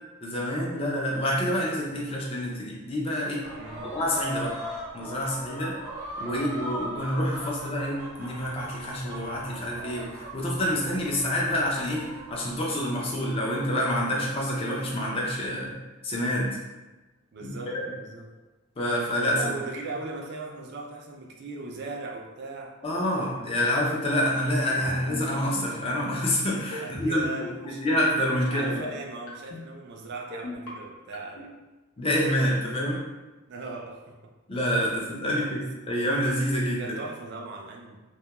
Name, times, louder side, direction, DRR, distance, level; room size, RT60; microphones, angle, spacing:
voice 1, 0.2-3.5 3.8-4.6 4.9-5.8 6.2-15.7 16.0-16.6 17.4-17.8 18.8-19.4 22.8-27.2 27.8-28.8 32.0-33.0 34.5-36.8, equal, 25° left, -3 dB, 0.5 m, -27 dB
sound 1, 3.4-12.5, equal, 80° right, 0.8 m, -39 dB
voice 2, 3.5-4.0 6.2-7.2 17.3-18.3 19.3-22.8 26.8-27.8 28.4-31.5 33.5-34.3 35.3-35.6 36.8-38.0, right 3 dB, 50° right, 1 dB, 0.4 m, -39 dB
sound 2, 24.7-25.2 25.5-25.8 26.6-27.1 27.4-27.7 28.4-28.9 29.3-29.6 30.3-30.7 31.1-31.5, left 3 dB, 80° left, 0.7 m, -38 dB
2.3 x 2.2 x 2.9 m, 1.1 s
head